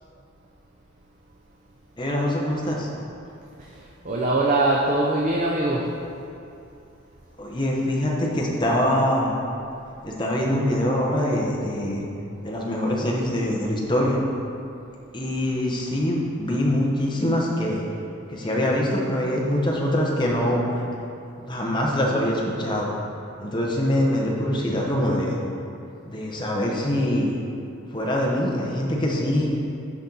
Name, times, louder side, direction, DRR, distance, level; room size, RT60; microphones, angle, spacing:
voice 1, 2.0-2.9 7.4-9.4 10.0-12.0 12.4-14.2 15.1-17.8 18.3-20.8 21.4-22.9 23.4-25.3 26.0-27.3 27.9-29.5, left 1 dB, 20° left, -3 dB, 1.0 m, -24 dB
voice 2, 3.6-5.8, right 2 dB, 35° right, -3 dB, 0.6 m, -23 dB
12.0 x 4.4 x 4.0 m, 2.6 s
head